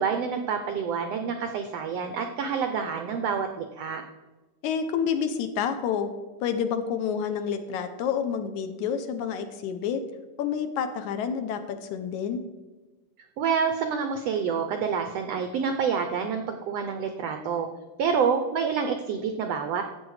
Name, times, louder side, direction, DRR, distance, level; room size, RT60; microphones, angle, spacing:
voice 1, 0.0-4.0 13.4-17.7 18.0-19.8, right 6 dB, 80° right, 7 dB, 1.4 m, -27 dB
voice 2, 4.6-6.1 6.4-10.0 10.4-12.4, left 7 dB, 75° left, 9 dB, 2.0 m, -29 dB
13.0 x 8.2 x 4.8 m, 1.2 s
omnidirectional pair, 3.8 m